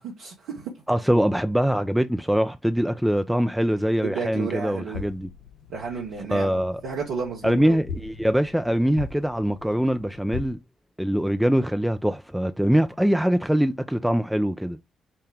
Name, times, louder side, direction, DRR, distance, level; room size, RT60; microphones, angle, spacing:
voice 1, 0.0-0.7 4.0-5.1 5.7-7.8, right 5 dB, 65° right, 0.8 m, -32 dB
voice 2, 0.9-5.3 6.3-6.8 7.4-10.6 11.0-14.8, equal, 5° right, 0.4 m, -23 dB
sound 1, 4.9-10.5, left 6 dB, 70° left, 0.6 m, -40 dB
5.3 x 2.2 x 3.4 m
figure-of-eight pair, 40°, 0 cm